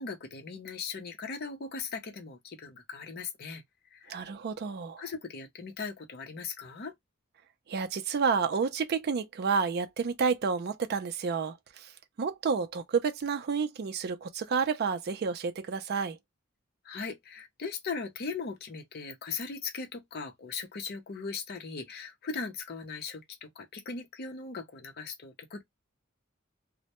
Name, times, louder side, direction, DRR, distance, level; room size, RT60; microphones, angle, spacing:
voice 1, 0.0-3.6 3.9-4.2 5.0-6.9 16.8-25.6, left 4 dB, 50° left, 0.6 m, -39 dB
voice 2, 4.1-5.0 7.7-11.9 12.2-16.2, right 5 dB, 50° right, 0.4 m, -30 dB
2.1 x 2.0 x 2.8 m
head